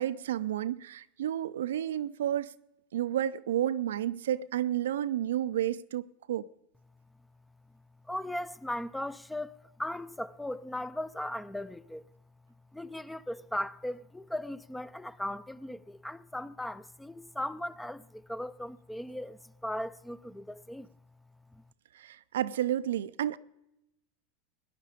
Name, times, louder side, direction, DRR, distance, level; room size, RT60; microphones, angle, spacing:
voice 1, 0.0-2.5 2.9-6.5 21.9-23.4, right 11 dB, 75° right, 0.4 m, -31 dB
voice 2, 8.1-12.0 12.7-20.9 21.5-21.6, left 1 dB, 5° left, 0.5 m, -38 dB
18.0 x 10.5 x 5.0 m
hypercardioid pair, 85°, 0 cm